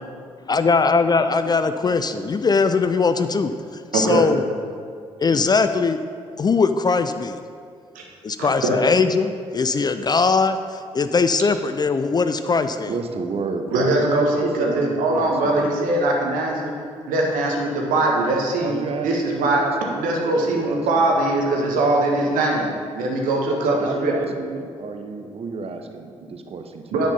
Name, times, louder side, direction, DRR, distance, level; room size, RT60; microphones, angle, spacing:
voice 1, 0.5-3.5 3.9-4.4 5.2-6.0 6.4-7.4 8.2-12.9, left 4 dB, 25° left, 10 dB, 0.4 m, -20 dB
voice 2, 3.9-4.3 7.9-8.0 8.4-8.8 13.7-16.7 17.1-18.7 19.0-19.6 20.0-22.7 22.9-24.1 26.9-27.1, right 2 dB, 65° right, 0 dB, 1.3 m, -21 dB
voice 3, 12.9-15.8 18.6-21.1 23.5-27.1, right 4 dB, 40° right, 6 dB, 0.8 m, -31 dB
9.7 x 4.4 x 5.4 m, 2.3 s
figure-of-eight pair, 40°, 16 cm